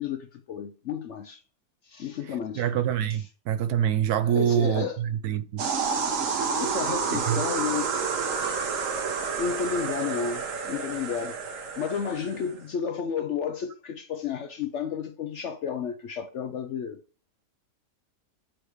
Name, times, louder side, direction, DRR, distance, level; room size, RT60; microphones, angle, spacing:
voice 1, 0.0-1.4 1.8-2.6 4.3-5.0 6.5-9.0 9.4-11.3 11.8-17.0, left 7 dB, 65° left, 0.7 m, -32 dB
voice 2, 2.6-5.6 7.1-7.4, right 9 dB, 75° right, 1.1 m, -25 dB
sound 1, 5.6-12.5, right 5 dB, 60° right, 1.2 m, -29 dB
7.7 x 4.8 x 3.1 m
omnidirectional pair, 1.7 m